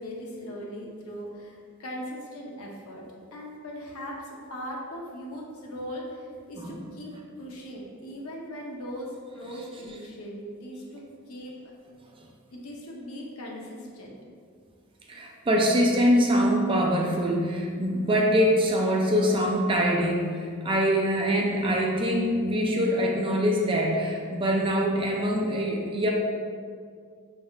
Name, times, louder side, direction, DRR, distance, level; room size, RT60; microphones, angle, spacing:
voice 1, 0.0-3.0 3.3-7.1 7.4-11.7 12.5-14.1, equal, 70° left, -2 dB, 0.7 m, -39 dB
voice 2, 15.1-26.1, equal, 25° right, 0 dB, 0.4 m, -24 dB
5.3 x 3.4 x 2.3 m, 2.1 s
head